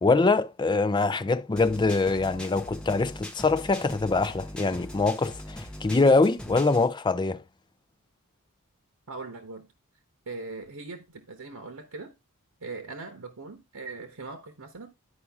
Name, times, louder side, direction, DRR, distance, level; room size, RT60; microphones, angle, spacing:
voice 1, 0.0-7.4, left 3 dB, 20° left, 0.4 m, -24 dB
sound 1, 1.6-6.9, equal, 5° left, 1.2 m, -41 dB
voice 2, 9.1-9.7 10.3-12.1 12.6-14.9, right 3 dB, 85° right, 1.2 m, -40 dB
11.0 x 5.0 x 3.5 m
head